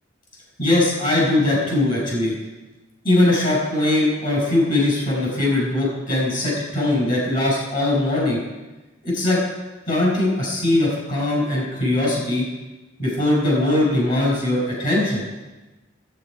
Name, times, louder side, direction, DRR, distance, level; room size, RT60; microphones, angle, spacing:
voice 1, 0.6-2.3 3.0-8.4 9.0-9.4 9.9-12.4 13.0-15.3, left 1 dB, 45° left, -4 dB, 4.9 m, -20 dB
16.0 x 8.2 x 5.0 m, 1.1 s
head